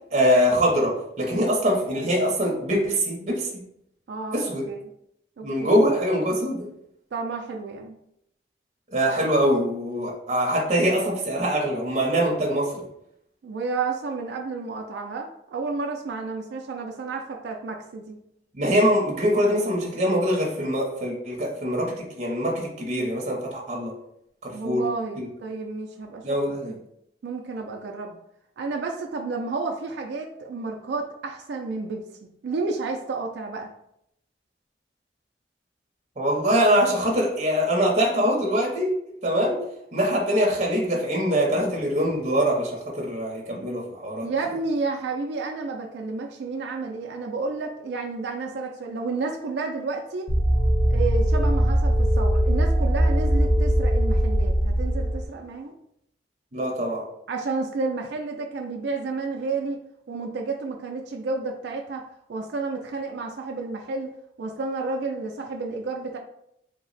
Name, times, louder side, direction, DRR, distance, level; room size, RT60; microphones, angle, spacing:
voice 1, 0.1-3.6 4.3-4.7 5.4-6.7 8.9-12.8 18.5-23.9 24.4-24.8 25.2-25.3 26.2-26.7 36.2-38.9 39.2-39.6 39.9-44.3 56.5-57.0, equal, 40° right, -2 dB, 0.7 m, -23 dB
voice 2, 4.1-4.8 5.4-5.8 7.1-8.0 13.4-18.2 24.5-26.4 26.7-26.8 27.2-28.2 28.6-32.0 32.4-33.7 44.2-50.3 50.9-55.8 57.3-59.8 60.1-62.0 62.3-64.1 64.4-66.2, right 3 dB, 65° right, 2 dB, 0.3 m, -31 dB
sound 1, 50.3-55.3, equal, 30° left, 0.6 m, -21 dB
3.3 x 2.1 x 3.9 m, 0.77 s
head